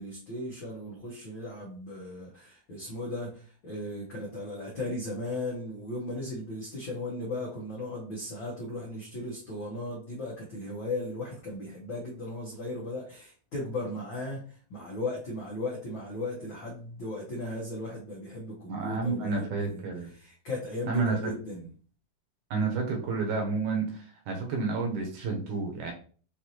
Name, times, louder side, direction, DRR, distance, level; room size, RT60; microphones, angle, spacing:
voice 1, 0.0-19.8 20.1-21.7, left 1 dB, 80° left, -4 dB, 1.1 m, -37 dB
voice 2, 18.7-20.1 20.9-21.3 22.5-25.9, right 4 dB, 70° right, 2 dB, 2.1 m, -30 dB
6.2 x 2.6 x 2.8 m, 0.41 s
omnidirectional pair, 3.8 m